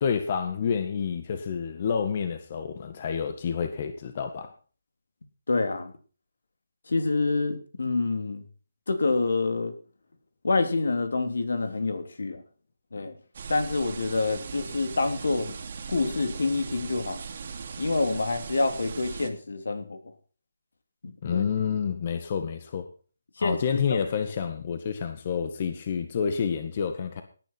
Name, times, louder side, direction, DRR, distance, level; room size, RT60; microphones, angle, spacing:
voice 1, 0.0-4.5 21.2-22.9 23.4-27.2, left 6 dB, 40° left, 8 dB, 1.7 m, -29 dB
voice 2, 5.5-5.9 6.9-8.4 8.9-9.7 10.4-12.4 12.9-13.2 13.5-15.5 15.9-17.2 17.8-20.0 21.3-21.4 23.4-24.0, left 3 dB, 80° left, 8 dB, 3.0 m, -27 dB
sound 1, 13.3-19.3, right 5 dB, 45° right, 2.5 m, -39 dB
18.0 x 9.7 x 4.3 m, 0.38 s
hypercardioid pair, 165°, 0 cm